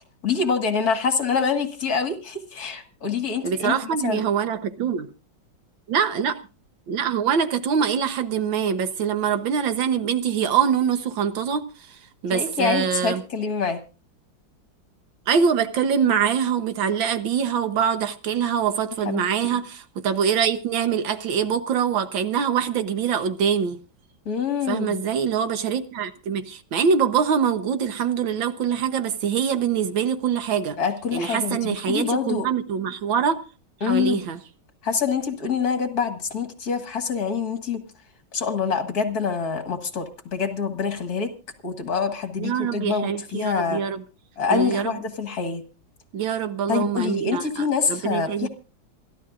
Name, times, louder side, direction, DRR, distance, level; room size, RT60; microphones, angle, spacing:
voice 1, 0.2-3.8 4.0-4.2 12.3-13.8 19.1-19.2 19.5-19.6 24.3-25.0 30.8-32.5 33.8-34.2 34.8-37.8 38.3-41.3 41.6-43.8 44.4-45.6 46.7-48.5, left 6 dB, 50° left, 2.1 m, -25 dB
voice 2, 3.4-5.1 5.9-6.4 6.9-12.0 12.2-13.2 15.3-23.8 24.7-30.8 31.1-33.4 33.8-34.4 42.4-44.0 44.5-45.0 46.1-48.5, right 7 dB, 75° right, 1.8 m, -24 dB
27.0 x 12.0 x 2.5 m
omnidirectional pair, 2.1 m